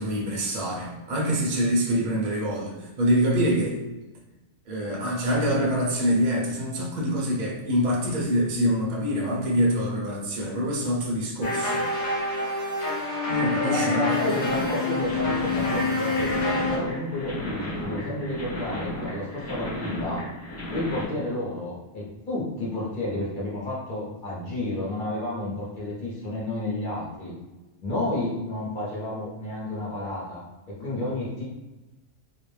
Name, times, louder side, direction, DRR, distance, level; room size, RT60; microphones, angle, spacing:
voice 1, 0.0-3.8 4.7-11.8 13.3-14.2, equal, 50° right, -3 dB, 0.7 m, -25 dB
sound 1, 11.4-16.8, left 3 dB, 75° left, 0.9 m, -27 dB
voice 2, 13.6-20.2 20.7-27.3 27.8-30.4 30.7-31.4, left 1 dB, 50° left, -6 dB, 1.0 m, -31 dB
sound 2, 14.5-21.0, equal, 20° left, 0.4 m, -34 dB
2.5 x 2.1 x 3.1 m, 1.1 s
omnidirectional pair, 1.2 m